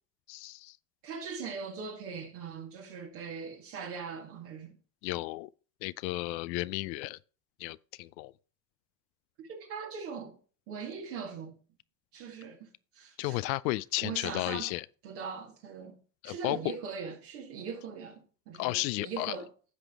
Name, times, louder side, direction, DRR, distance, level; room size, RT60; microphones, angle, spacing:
voice 1, 0.3-0.8 5.0-5.5 5.8-7.2 7.6-8.3 13.2-14.9 16.2-16.6 18.5-19.4, left 19 dB, 85° left, 0.6 m, -33 dB
voice 2, 1.0-4.7 9.4-10.4 10.7-11.5 12.1-12.7 12.9-13.4 14.0-14.7 15.0-16.0 16.2-19.5, right 6 dB, 80° right, 2.0 m, -40 dB
15.0 x 5.1 x 3.6 m
hypercardioid pair, 65°, 50 cm